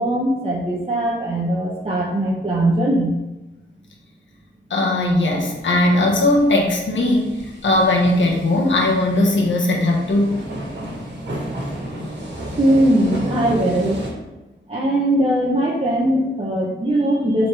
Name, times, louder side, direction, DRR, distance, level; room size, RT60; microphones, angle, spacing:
voice 1, 0.0-3.2 12.6-14.0 14.7-17.5, right 1 dB, 30° right, -4 dB, 1.0 m, -20 dB
voice 2, 4.7-10.4, left 1 dB, 75° left, -1 dB, 1.4 m, -18 dB
sound 1, 5.0-14.1, right 1 dB, 60° right, 1.8 m, -32 dB
7.5 x 4.2 x 3.4 m, 1.0 s
wide cardioid pair, 90°, 20 cm